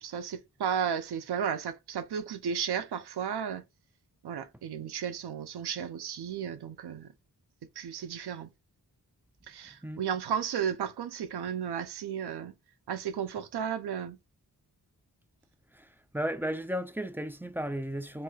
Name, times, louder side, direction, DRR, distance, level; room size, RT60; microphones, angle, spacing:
voice 1, 0.0-3.6 4.2-7.1 7.8-8.5 9.5-12.5 12.9-14.2, right 8 dB, 80° right, 0.5 m, -34 dB
voice 2, 16.1-18.2, equal, 5° right, 0.3 m, -34 dB
3.2 x 2.7 x 2.2 m
wide cardioid pair, 75°, 39 cm